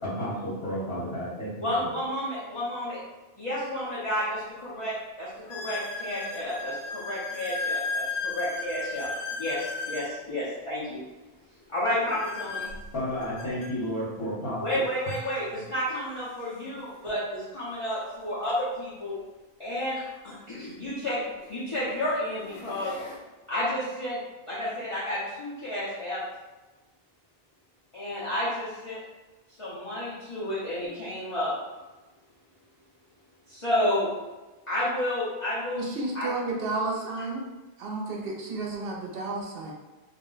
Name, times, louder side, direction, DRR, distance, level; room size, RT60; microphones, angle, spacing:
voice 1, 0.0-1.9 12.9-14.6, equal, 65° left, -11 dB, 1.1 m, -32 dB
voice 2, 1.6-3.0 3.4-9.1 9.4-11.0 11.7-12.7 14.6-19.2 19.6-21.2 21.5-22.9 23.5-24.2 24.5-26.2 27.9-29.0 29.6-31.5 33.5-34.1 34.7-35.9 36.1-36.3, left 1 dB, 35° left, -10 dB, 0.6 m, -31 dB
sound 1, 3.8-3.9 4.5-4.6 5.5-10.1 12.1-13.7 14.7-14.8 15.1-15.3 16.0-16.1 18.4-18.5 20.5-20.6 21.4-21.7 22.2-23.2, left 3 dB, 85° left, 0.8 m, -35 dB
voice 3, 35.7-37.4 37.8-39.7, right 3 dB, 65° right, -1 dB, 0.8 m, -32 dB
2.4 x 2.1 x 3.7 m, 1.2 s
omnidirectional pair, 1.1 m